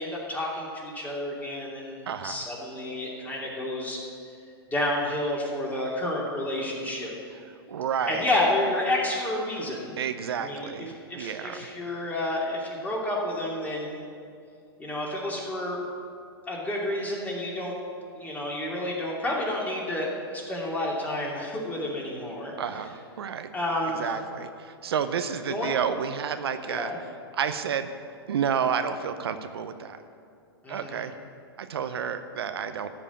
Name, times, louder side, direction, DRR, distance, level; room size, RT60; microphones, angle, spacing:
voice 1, 0.0-4.0 4.7-7.1 8.1-9.9 10.4-14.0 14.8-15.8 16.5-17.7 18.1-22.5 23.5-24.0 25.5-25.8 26.7-26.9 30.6-31.0, left 1 dB, 10° left, -3 dB, 2.7 m, -30 dB
voice 2, 2.1-2.4 7.7-8.3 10.0-11.7 22.6-23.5 23.9-26.9 27.3-27.9 28.3-30.0 30.7-31.1 31.6-32.9, right 7 dB, 75° right, 9 dB, 0.7 m, -30 dB
14.0 x 5.4 x 8.4 m, 2.4 s
hypercardioid pair, 115°, 13 cm